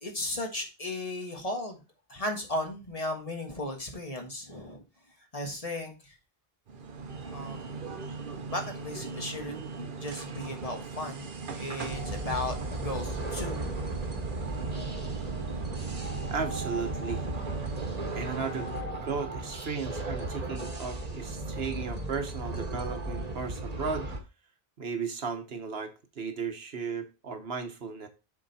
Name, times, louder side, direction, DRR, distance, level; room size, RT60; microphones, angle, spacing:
voice 1, 0.0-1.8 2.1-4.8 5.3-6.1 7.3-7.7 8.5-11.3 11.5-13.8, left 1 dB, 35° left, 1.6 m, -36 dB
sound 1, 6.7-18.8, right 4 dB, 55° right, 1.0 m, -40 dB
sound 2, 11.9-24.2, right 2 dB, 40° right, 1.4 m, -35 dB
voice 2, 16.1-17.3 18.1-18.7 19.0-24.1 24.8-28.1, right 5 dB, 75° right, 1.4 m, -35 dB
7.1 x 4.5 x 4.2 m
omnidirectional pair, 1.0 m